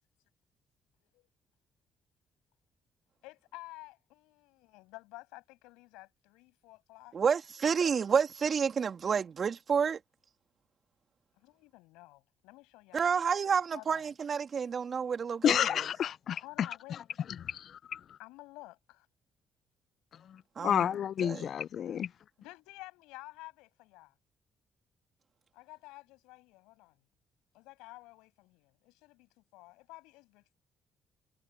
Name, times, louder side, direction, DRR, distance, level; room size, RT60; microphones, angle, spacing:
voice 1, 3.2-7.2 11.4-13.2 13.7-14.1 16.4-17.1 18.2-19.1 22.4-24.1 25.5-27.0 27.5-30.6, left 21 dB, 80° left, 6.7 m, -51 dB
voice 2, 7.1-10.0 12.9-15.6 20.6-20.9 21.2-21.5, right 6 dB, 50° right, 3.0 m, -29 dB
voice 3, 15.4-17.0 17.4-18.0 20.3-22.1, left 9 dB, 60° left, 0.5 m, -31 dB
hypercardioid pair, 50°, 0 cm